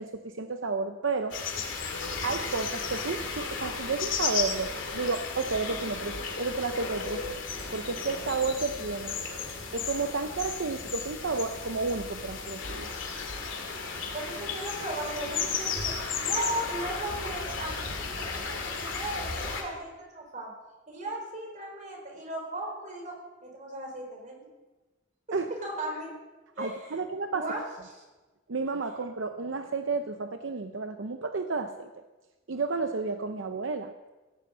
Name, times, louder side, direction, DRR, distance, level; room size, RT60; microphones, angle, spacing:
voice 1, 0.0-1.4 2.2-7.4 7.7-9.1 9.7-12.9 25.3-25.5 26.6-27.5 28.5-31.9 32.5-33.9, right 4 dB, 75° right, 7 dB, 0.7 m, -31 dB
sound 1, 1.3-19.6, left 5 dB, 80° left, 2.5 m, -34 dB
voice 2, 14.1-15.9 16.2-20.5 20.9-23.2 23.4-24.5 25.3-26.1 26.6-27.0 27.3-27.6, right 1 dB, 40° right, 1 dB, 4.0 m, -36 dB
17.0 x 7.7 x 7.8 m, 1.2 s
head